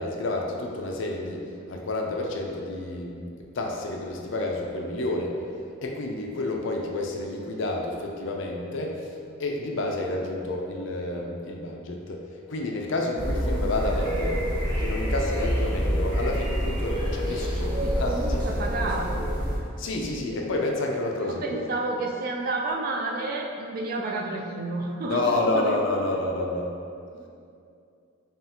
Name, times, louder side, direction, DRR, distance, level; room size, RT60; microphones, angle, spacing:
voice 1, 0.0-5.4 5.8-14.5 14.8-18.1 19.8-21.6 25.1-26.7, left 2 dB, 60° left, 0 dB, 0.4 m, -29 dB
sound 1, 13.2-19.6, equal, 20° right, 0.9 m, -27 dB
voice 2, 17.8-19.4 20.3-20.5 21.2-25.7 27.1-27.3, right 2 dB, 45° right, 1 dB, 0.3 m, -31 dB
5.5 x 2.4 x 2.8 m, 2.4 s
head